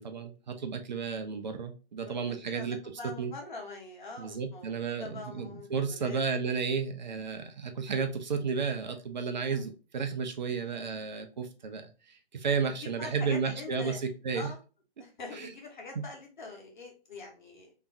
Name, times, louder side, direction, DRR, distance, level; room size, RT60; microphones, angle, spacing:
voice 1, 0.0-2.8 3.2-3.3 4.2-14.5 15.3-15.5 16.0-16.1, right 5 dB, 50° right, 0.6 m, -33 dB
voice 2, 2.0-6.2 9.4-9.6 10.6-10.7 12.8-14.0 14.3-14.6 15.0-17.7, left 3 dB, 50° left, 1.3 m, -44 dB
3.4 x 3.0 x 2.5 m
figure-of-eight pair, 135°, 30 cm